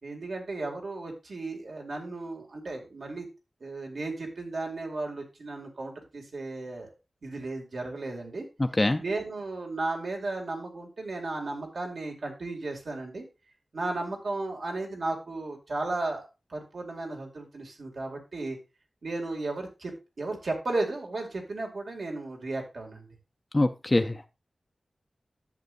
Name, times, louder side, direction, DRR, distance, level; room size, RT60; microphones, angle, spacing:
voice 1, 0.0-3.3 3.6-6.9 7.2-8.5 9.0-13.2 13.7-18.6 19.0-23.1, right 2 dB, 70° right, 2 dB, 2.2 m, -34 dB
voice 2, 23.5-24.3, left 2 dB, 25° left, 6 dB, 0.5 m, -24 dB
10.5 x 7.5 x 2.5 m, 0.27 s
wide cardioid pair, 105°, 0 cm